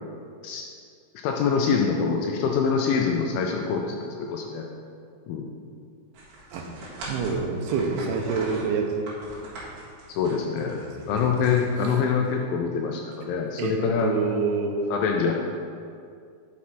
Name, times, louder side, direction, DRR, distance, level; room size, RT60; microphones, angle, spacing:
voice 1, 1.2-4.7 5.3-5.5 10.1-10.8 11.1-14.1 14.9-15.3, left 6 dB, 80° left, 1 dB, 2.1 m, -25 dB
sound 1, 6.1-12.3, right 2 dB, 60° right, 3.1 m, -41 dB
voice 2, 6.5-9.0 10.8-11.3 11.8-12.0 13.6-14.7, right 5 dB, 90° right, 2 dB, 2.7 m, -28 dB
6.1 x 5.9 x 4.2 m, 2.3 s
omnidirectional pair, 4.6 m